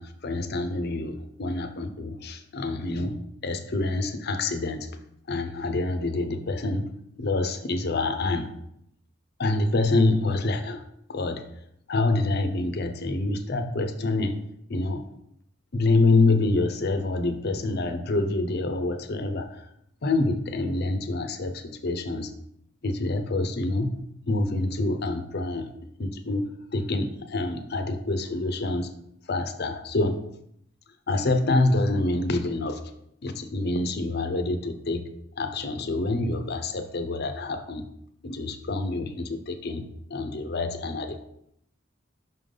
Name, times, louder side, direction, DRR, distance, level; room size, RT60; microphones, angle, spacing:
voice 1, 0.0-4.9 5.3-6.9 7.2-8.5 9.4-10.8 11.1-11.4 11.9-14.4 14.7-15.0 15.7-19.7 20.0-22.3 22.8-24.0 24.3-25.7 26.0-28.9 29.3-30.2 31.1-32.8 33.2-35.1 35.4-37.9 38.2-39.8 40.1-41.2, left 2 dB, 55° left, 7 dB, 0.7 m, -26 dB
5.7 x 3.8 x 5.4 m, 0.75 s
head